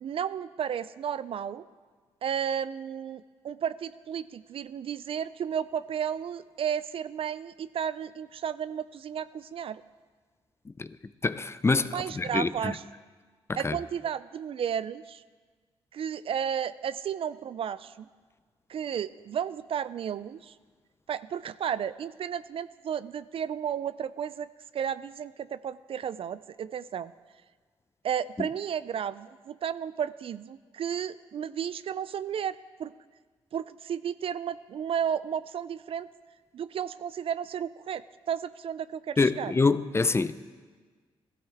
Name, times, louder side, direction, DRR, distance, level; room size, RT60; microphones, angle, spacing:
voice 1, 0.0-1.6 2.2-9.8 11.9-12.8 13.6-15.2 15.9-18.1 18.7-20.5 21.1-24.5 24.7-27.1 28.0-32.9 33.5-36.1 36.5-39.5, right 8 dB, 60° right, 0.4 m, -33 dB
voice 2, 11.2-12.8 13.5-13.8 28.4-28.5 39.2-40.3, left 3 dB, 25° left, 0.5 m, -26 dB
15.0 x 12.5 x 3.5 m
cardioid pair, 65°, 11 cm